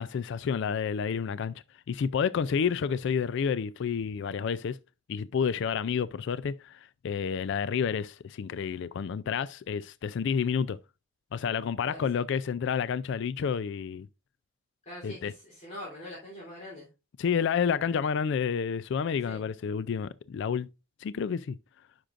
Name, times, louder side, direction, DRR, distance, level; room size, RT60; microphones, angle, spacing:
voice 1, 0.0-1.5 1.9-4.8 5.1-10.8 11.3-14.1 15.0-15.3 17.2-20.7 21.0-21.6, left 6 dB, 65° left, 0.3 m, -30 dB
voice 2, 11.9-12.2 14.8-16.9 19.2-19.4, left 1 dB, 35° left, 3.2 m, -43 dB
10.0 x 6.0 x 2.5 m
head